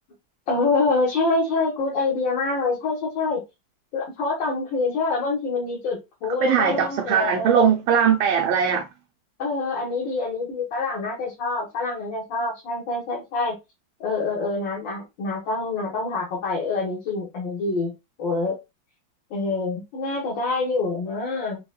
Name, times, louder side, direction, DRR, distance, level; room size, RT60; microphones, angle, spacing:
voice 1, 0.5-3.4 3.9-7.7 9.4-13.5 14.0-17.9 18.2-18.6 19.3-21.6, left 3 dB, 70° left, 2.3 m, -26 dB
voice 2, 6.3-8.9, right 7 dB, 90° right, 1.5 m, -20 dB
7.0 x 2.3 x 2.3 m
omnidirectional pair, 2.1 m